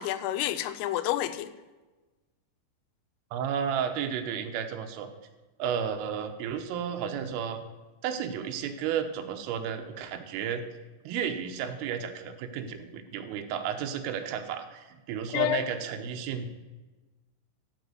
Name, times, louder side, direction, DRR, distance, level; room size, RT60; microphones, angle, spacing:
voice 1, 0.0-1.5 15.3-15.6, left 12 dB, 85° left, 3.3 m, -29 dB
voice 2, 3.3-5.1 5.6-7.6 8.0-10.6 11.0-16.5, right 8 dB, 85° right, 3.4 m, -32 dB
14.5 x 5.1 x 7.8 m
omnidirectional pair, 5.8 m